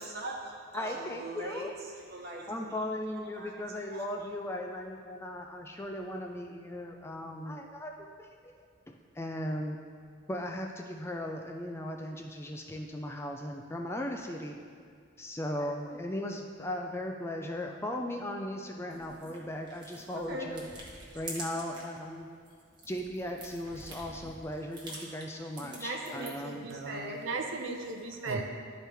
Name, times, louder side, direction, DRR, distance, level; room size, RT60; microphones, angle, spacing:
voice 1, 0.0-1.7 1.9-2.7 3.3-3.5 3.9-4.0 20.3-20.5 20.8-20.9 25.8-27.2, right 1 dB, 50° right, -1 dB, 1.1 m, -40 dB
voice 2, 0.7-1.7 2.5-8.6 8.9-9.8 10.3-14.6 15.2-20.7 21.1-22.3 22.9-26.7, left 1 dB, 10° left, 2 dB, 0.3 m, -37 dB
sound 1, 18.9-22.0 22.3-26.5, right 1 dB, 20° right, 1.1 m, -47 dB
voice 3, 26.7-28.4, right 3 dB, 70° right, 2 dB, 0.7 m, -36 dB
12.0 x 4.5 x 3.4 m, 2.1 s
head